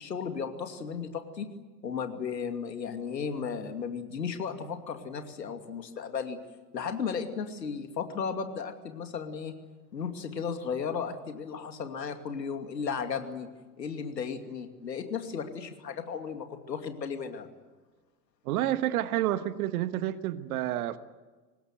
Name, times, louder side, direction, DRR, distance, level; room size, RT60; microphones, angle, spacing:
voice 1, 0.0-1.5 1.8-6.4 6.7-9.5 9.9-13.5 13.8-17.5, left 6 dB, 80° left, 6 dB, 2.7 m, -35 dB
voice 2, 18.4-21.0, right 13 dB, 60° right, 13 dB, 1.4 m, -29 dB
25.0 x 20.0 x 9.5 m, 1.3 s
figure-of-eight pair, 85°, 50 cm